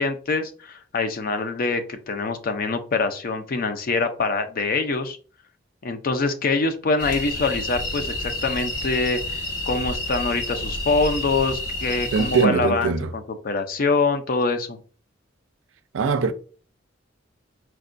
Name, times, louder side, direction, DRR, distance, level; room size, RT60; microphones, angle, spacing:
voice 1, 0.0-5.2 5.8-14.8, left 3 dB, 50° left, 0.5 m, -24 dB
sound 1, 7.0-12.4, left 1 dB, 80° left, 1.0 m, -29 dB
voice 2, 12.1-13.1 15.9-16.3, right 5 dB, 75° right, 0.4 m, -22 dB
4.5 x 2.2 x 2.5 m
head